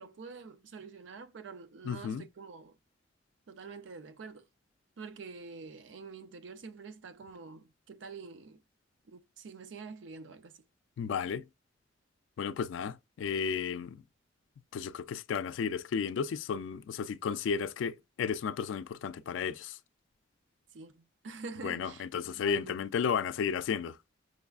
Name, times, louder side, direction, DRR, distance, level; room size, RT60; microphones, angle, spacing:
voice 1, 0.0-2.8 3.5-4.5 5.0-8.6 9.1-10.6 20.7-22.8, right 4 dB, 70° right, 0.4 m, -47 dB
voice 2, 1.8-2.2 11.0-11.4 12.4-14.0 14.7-19.8 21.6-24.0, left 6 dB, 80° left, 0.3 m, -33 dB
5.9 x 2.3 x 2.3 m
head